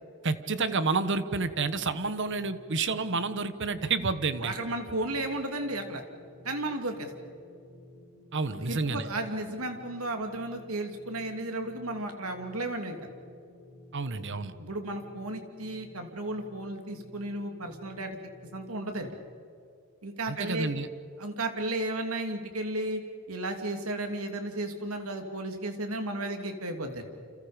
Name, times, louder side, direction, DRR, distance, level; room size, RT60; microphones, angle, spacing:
voice 1, 0.2-4.5 8.3-9.1 13.9-14.5 20.3-20.9, right 4 dB, 55° right, 12 dB, 1.2 m, -29 dB
sound 1, 1.7-19.1, left 1 dB, 30° right, 5.8 m, -53 dB
voice 2, 4.4-6.0 6.4-7.1 8.6-13.0 14.6-18.2 18.5-19.1 20.0-20.7 21.2-23.0 23.3-27.0, right 2 dB, 80° right, 5 dB, 2.9 m, -34 dB
29.5 x 27.5 x 5.2 m, 2.3 s
head